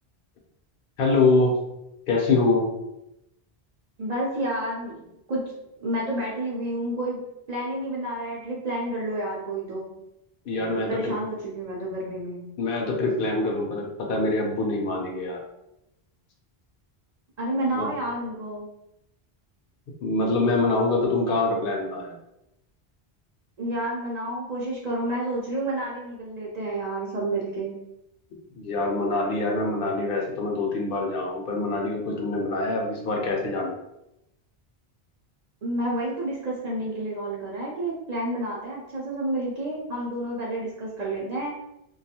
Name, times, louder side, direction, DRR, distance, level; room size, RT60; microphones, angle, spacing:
voice 1, 1.0-1.6 2.1-2.7 10.5-11.2 12.6-15.4 17.7-17.9 20.0-22.2 28.6-33.8, left 3 dB, 65° left, 0 dB, 0.7 m, -25 dB
voice 2, 4.0-5.0 5.3-5.5 5.8-9.9 10.7-12.5 17.4-18.7 23.6-27.7 35.6-41.6, right 1 dB, 50° right, -4 dB, 0.5 m, -30 dB
2.5 x 2.3 x 2.7 m, 0.87 s
omnidirectional pair, 1.1 m